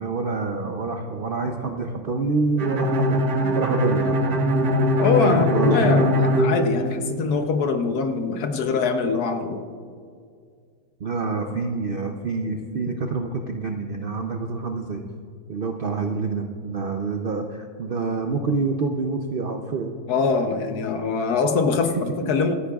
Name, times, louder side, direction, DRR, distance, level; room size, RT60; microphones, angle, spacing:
voice 1, 0.0-3.2 3.5-4.2 5.2-6.2 11.0-15.0 15.5-19.9 22.2-22.3, right 4 dB, 85° right, 4 dB, 0.5 m, -27 dB
Bowed string instrument, 2.6-7.4, equal, 65° right, 1.5 m, -22 dB
voice 2, 5.0-9.6 20.1-22.6, left 4 dB, 70° left, 7 dB, 1.3 m, -23 dB
26.0 x 9.8 x 2.4 m, 2.2 s
omnidirectional pair, 1.8 m